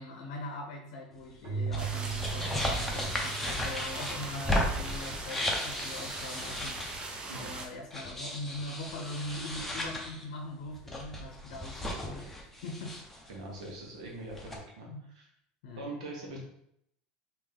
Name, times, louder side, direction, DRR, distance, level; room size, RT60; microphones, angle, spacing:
voice 1, 0.0-12.3 12.6-13.0 14.9-15.1 15.6-16.0, left 2 dB, 80° left, 1 dB, 0.6 m, -42 dB
sound 1, 1.4-7.2 7.9-10.2 10.7-13.3 13.6-13.7 14.1-14.6, left 1 dB, 5° left, 0.8 m, -35 dB
Keyboard (musical), 1.4-5.0, right 6 dB, 55° right, 0.8 m, -38 dB
sound 2, 1.8-7.7, right 2 dB, 25° right, 0.6 m, -40 dB
voice 2, 13.3-14.9 15.1-15.2 15.8-16.4, right 2 dB, 90° right, -2 dB, 1.2 m, -42 dB
3.4 x 2.9 x 3.4 m, 0.74 s
supercardioid pair, 105°, 3 cm